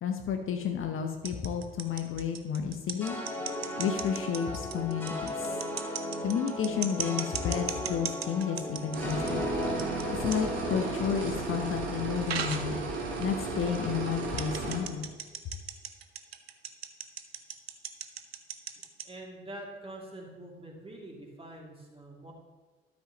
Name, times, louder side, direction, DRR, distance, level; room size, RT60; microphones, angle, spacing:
voice 1, 0.0-3.2 3.8-5.6 6.2-9.4 10.1-12.8 13.2-15.1, left 7 dB, 45° left, 5 dB, 0.8 m, -31 dB
sound 1, 1.1-9.3 9.6-10.0 10.3-10.4 11.2-11.3 12.3-12.7 13.2-13.3 13.6-13.8 14.4-19.1, right 8 dB, 85° right, 0.5 m, -36 dB
sound 2, 3.0-12.3, left 1 dB, 5° left, 2.9 m, -36 dB
sound 3, 8.9-14.8, right 3 dB, 65° right, 1.9 m, -35 dB
voice 2, 19.0-22.3, right 1 dB, 20° right, -1 dB, 2.5 m, -45 dB
12.5 x 7.2 x 3.0 m, 1.3 s
figure-of-eight pair, 45°, 30 cm